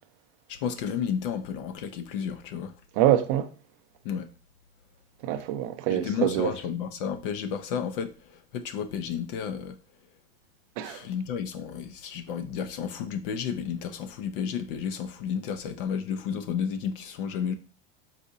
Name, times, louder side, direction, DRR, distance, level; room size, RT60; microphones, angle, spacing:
voice 1, 0.5-2.7 4.0-4.3 5.9-9.8 10.8-17.5, left 7 dB, 55° left, 0.5 m, -32 dB
voice 2, 2.9-3.5 5.2-6.5 10.8-11.1, right 12 dB, 35° right, 0.4 m, -25 dB
4.6 x 4.0 x 2.7 m
supercardioid pair, 165°, 31 cm